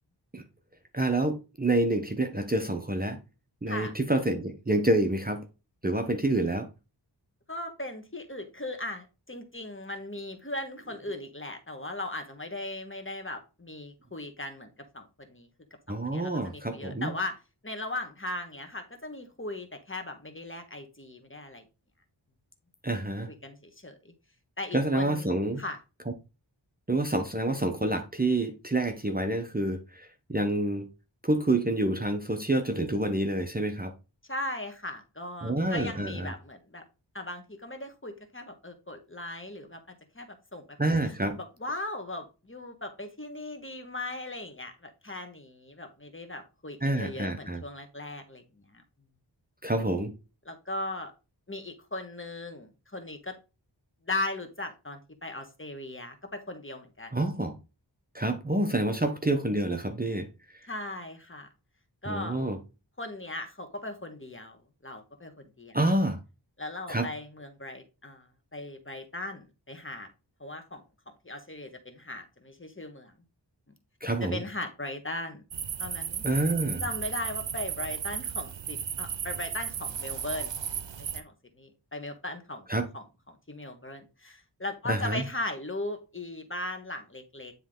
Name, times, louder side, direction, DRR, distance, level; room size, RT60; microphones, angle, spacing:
voice 1, 0.9-3.2 3.6-5.4 5.8-6.7 15.9-17.1 22.8-23.3 24.7-25.6 26.9-30.8 31.2-33.9 35.4-36.3 40.8-41.4 46.8-47.6 49.6-50.1 57.1-57.6 58.1-60.3 62.1-62.6 65.7-66.2 66.9-67.1 74.0-74.4 76.2-76.8 82.7-82.9 84.9-85.3, right 1 dB, 20° right, 0.9 m, -28 dB
voice 2, 7.5-15.5 15.9-17.4 17.6-21.6 23.3-24.1 24.6-25.3 25.6-25.8 34.3-36.8 37.1-40.8 41.1-48.8 50.4-51.1 51.5-53.4 54.0-57.1 60.7-61.5 62.0-62.4 63.0-65.8 66.6-70.1 70.4-70.8 71.2-73.1 74.2-75.4 75.8-76.2 76.8-82.7 82.9-87.5, left 2 dB, 25° left, 1.5 m, -38 dB
sound 1, 75.5-81.2, right 8 dB, 75° right, 0.7 m, -35 dB
9.8 x 3.3 x 3.7 m
wide cardioid pair, 45°, 44 cm